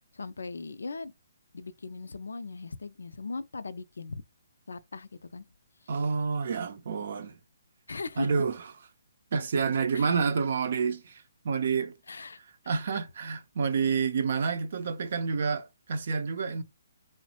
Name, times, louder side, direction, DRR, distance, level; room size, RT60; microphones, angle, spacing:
voice 1, 0.1-1.1 1.5-4.2 4.7-5.5 6.5-6.6 7.9-8.3 9.9-10.2 12.1-12.4 12.6-12.7, left 3 dB, 85° left, 0.3 m, -39 dB
voice 2, 5.9-7.3 8.2-8.6 9.3-11.9 12.7-16.6, right 5 dB, 60° right, 0.5 m, -29 dB
3.1 x 2.1 x 2.8 m
hypercardioid pair, 150°, 0 cm